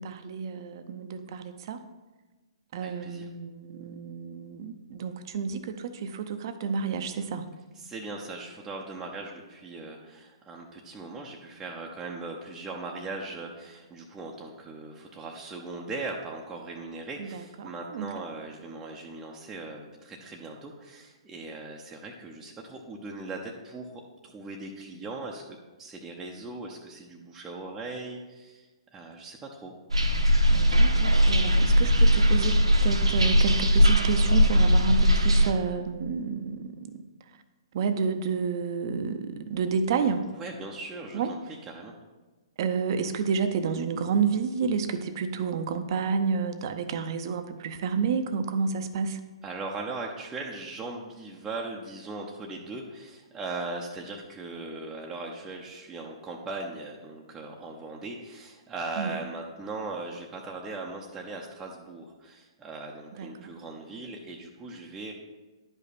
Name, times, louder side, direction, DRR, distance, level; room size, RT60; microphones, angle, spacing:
voice 1, 0.0-1.8 2.7-7.5 17.2-18.1 30.5-37.0 37.7-40.2 41.1-41.3 42.6-49.2 59.0-59.2 63.2-63.5, right 5 dB, 45° right, 10 dB, 0.7 m, -30 dB
voice 2, 2.8-3.3 7.8-25.4 25.8-28.7 28.9-29.7 40.4-41.4 41.7-41.9 49.4-65.1, right 3 dB, 10° right, -2 dB, 0.8 m, -39 dB
sound 1, 29.9-35.5, equal, 90° right, 1.2 m, -20 dB
10.5 x 5.3 x 4.2 m, 1.2 s
figure-of-eight pair, 125°, 3 cm